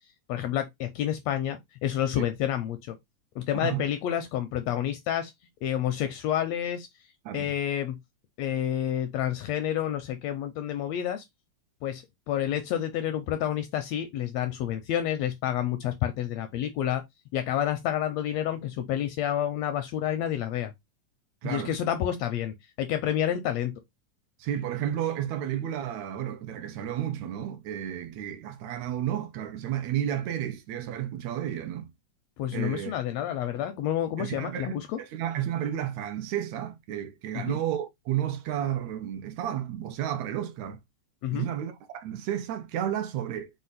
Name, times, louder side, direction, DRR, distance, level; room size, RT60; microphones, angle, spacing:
voice 1, 0.3-3.0 3.4-5.3 5.6-6.9 7.3-8.0 8.4-11.2 11.8-17.0 17.3-20.7 21.4-23.7 32.4-35.0 37.3-37.6 41.2-41.5, left 11 dB, 80° left, 1.6 m, -29 dB
voice 2, 21.4-21.8 24.4-31.9 32.5-32.9 34.2-40.8 41.3-43.5, right 11 dB, 75° right, 1.8 m, -32 dB
5.1 x 2.2 x 4.0 m
omnidirectional pair, 3.4 m